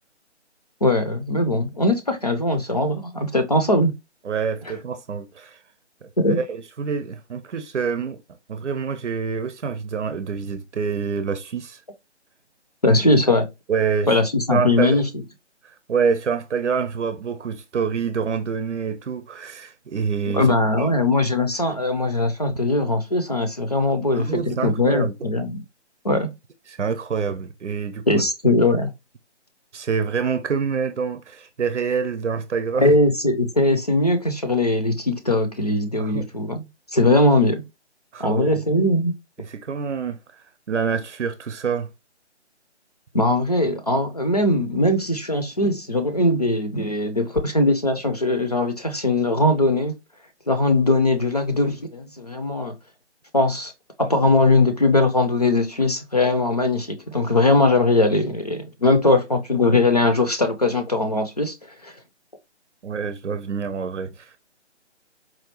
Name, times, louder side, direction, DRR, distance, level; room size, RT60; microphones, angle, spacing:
voice 1, 0.8-3.9 6.2-6.4 12.8-13.5 14.1-15.1 20.3-25.6 26.0-26.3 28.1-28.9 32.7-36.6 36.9-37.6 38.2-39.1 43.1-49.9 50.5-52.8 53.3-53.7 54.0-61.5 61.8-61.9, left 2 dB, 35° left, 0.4 m, -20 dB
voice 2, 4.2-5.6 6.0-6.1 6.4-8.2 8.5-11.8 13.7-14.1 14.5-15.0 15.6-20.9 24.1-25.1 26.7-28.2 29.7-32.9 36.0-36.3 38.1-38.6 39.4-40.2 40.7-41.9 62.8-64.4, right 6 dB, 80° right, 0.6 m, -26 dB
4.3 x 2.4 x 2.8 m
figure-of-eight pair, 155°, 35 cm